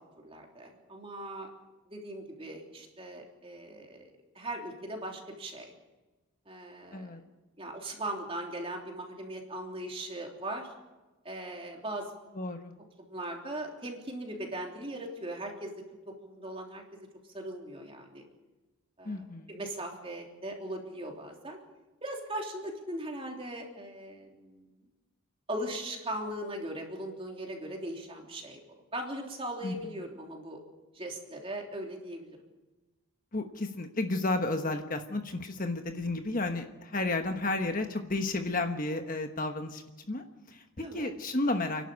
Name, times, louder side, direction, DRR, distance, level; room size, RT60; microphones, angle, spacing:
voice 1, 0.2-1.5 1.9-5.7 6.4-7.1 7.6-10.7 11.2-12.1 13.0-15.7 16.2-16.8 17.3-18.2 19.0-21.6 22.0-24.7 25.5-28.6 28.9-30.6 30.9-32.4 40.8-41.1, right 1 dB, 25° right, 1 dB, 3.4 m, -39 dB
voice 2, 12.3-12.7 19.0-19.6 29.6-29.7 33.3-41.9, left 2 dB, 40° left, 6 dB, 1.2 m, -32 dB
29.5 x 11.5 x 8.5 m, 1.2 s
head